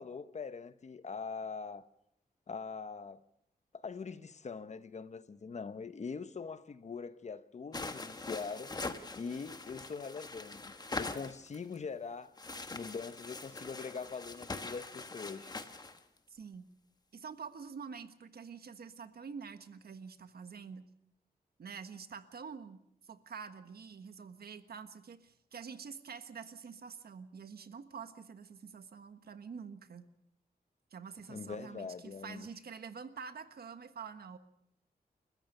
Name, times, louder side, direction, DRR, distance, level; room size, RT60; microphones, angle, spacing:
voice 1, 0.0-1.8 2.5-3.2 3.7-8.7 9.1-12.3 12.7-15.5 31.3-32.5, left 5 dB, 45° left, 0.9 m, -42 dB
sound 1, 7.7-11.8 12.4-16.0, left 3 dB, 25° left, 1.2 m, -43 dB
voice 2, 16.3-16.7 17.1-20.8 21.6-30.1 30.9-34.4, right 6 dB, 85° right, 1.4 m, -47 dB
30.0 x 14.5 x 6.7 m
wide cardioid pair, 165°, 16 cm